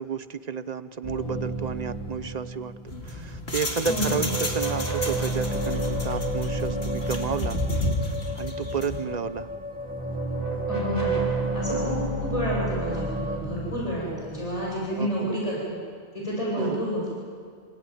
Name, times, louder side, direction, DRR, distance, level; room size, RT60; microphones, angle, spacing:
voice 1, 0.0-2.7 3.0-7.6 8.0-9.5 11.7-12.0 15.0-15.3 16.6-16.8, right 6 dB, 45° right, 13 dB, 0.9 m, -32 dB
sound 1, 1.0-3.3 3.6-8.8 9.7-15.2, right 2 dB, 20° left, 5.2 m, -31 dB
sound 2, 2.9-9.0, left 1 dB, 90° left, 3.0 m, -32 dB
voice 2, 3.9-4.2 10.7-11.2 11.5-15.8 16.1-17.1, equal, 35° left, -5 dB, 8.0 m, -29 dB
sound 3, 5.5-13.4, left 2 dB, 10° right, 2.1 m, -37 dB
27.5 x 18.5 x 9.4 m, 2.1 s
omnidirectional pair, 1.0 m